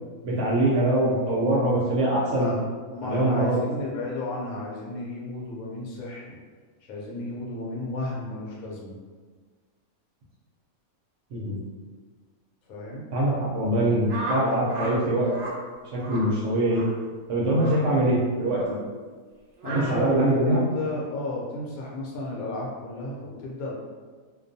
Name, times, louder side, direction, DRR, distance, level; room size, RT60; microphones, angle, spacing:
voice 1, 0.2-2.5 3.0-3.6 11.3-11.6 13.1-15.3 15.9-16.8 17.3-18.8 19.7-20.6, right 1 dB, 65° right, -5 dB, 0.8 m, -23 dB
voice 2, 2.9-6.4 6.9-9.0 12.7-13.0 17.7-18.0 19.6-23.7, left 2 dB, 75° left, -4 dB, 1.1 m, -33 dB
sound 1, 14.1-15.0 15.2-15.6 16.0-16.3 16.7-16.9 17.5-17.8 18.5-18.7 19.6-19.8, right 1 dB, 90° right, 0.4 m, -34 dB
2.4 x 2.2 x 2.6 m, 1.5 s
omnidirectional pair, 1.5 m